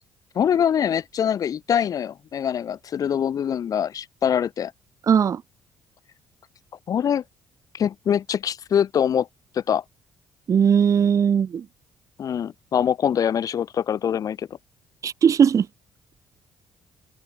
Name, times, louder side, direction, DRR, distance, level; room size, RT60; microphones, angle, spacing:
voice 1, 0.3-4.7 6.9-7.2 7.7-9.3 9.5-9.8 12.2-14.5, left 8 dB, 55° left, 1.4 m, -23 dB
voice 2, 5.1-5.4 10.5-11.6 15.0-15.7, right 7 dB, 50° right, 1.1 m, -18 dB
hypercardioid pair, 55°, 7 cm